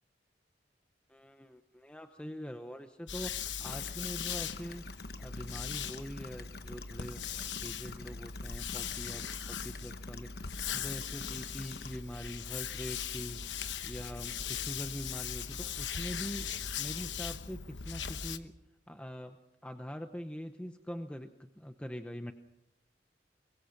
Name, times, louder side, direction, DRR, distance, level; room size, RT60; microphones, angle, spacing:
voice 1, 1.1-4.8 5.2-10.3 10.7-13.4 13.8-16.5 16.8-18.5 18.9-19.4 19.6-22.3, equal, 5° left, 6 dB, 0.8 m, -43 dB
sound 1, 3.1-18.4, left 7 dB, 90° left, 1.1 m, -39 dB
sound 2, 3.6-12.0, left 3 dB, 60° left, 1.2 m, -48 dB
23.5 x 22.5 x 5.9 m, 0.88 s
head